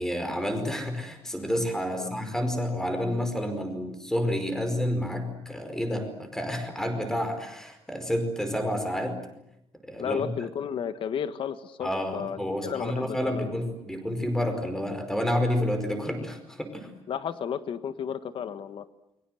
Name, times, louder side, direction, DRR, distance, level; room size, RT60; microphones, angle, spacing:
voice 1, 0.0-9.3 9.8-10.3 11.8-16.9, equal, 5° left, 7 dB, 5.0 m, -29 dB
voice 2, 10.0-13.5 17.1-18.9, left 8 dB, 60° left, 11 dB, 1.6 m, -33 dB
29.5 x 24.0 x 7.9 m, 0.81 s
cardioid pair, 155°, 10 cm